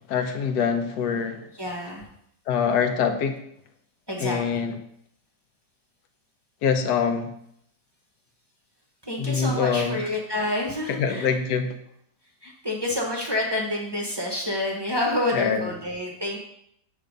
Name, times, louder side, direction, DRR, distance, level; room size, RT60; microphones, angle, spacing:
voice 1, 0.1-1.4 2.5-3.4 4.2-4.8 6.6-7.3 9.2-10.0 11.0-11.8 15.3-15.7, left 6 dB, 75° left, 7 dB, 1.3 m, -24 dB
voice 2, 1.6-2.1 4.1-4.7 9.0-11.4 12.4-16.4, left 1 dB, 25° right, -1 dB, 0.6 m, -28 dB
6.9 x 3.4 x 5.0 m, 0.73 s
omnidirectional pair, 1.8 m